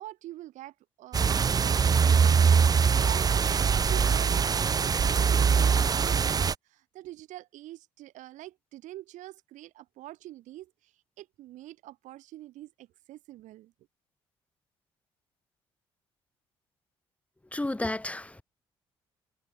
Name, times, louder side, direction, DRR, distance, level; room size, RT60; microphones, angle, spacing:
voice 1, 0.0-13.7, right 15 dB, 60° right, 0.9 m, -45 dB
sound 1, 1.1-6.5, right 6 dB, 25° right, 0.4 m, -23 dB
voice 2, 17.5-18.4, left 2 dB, 10° left, 0.8 m, -32 dB
figure-of-eight pair, 45°, 14 cm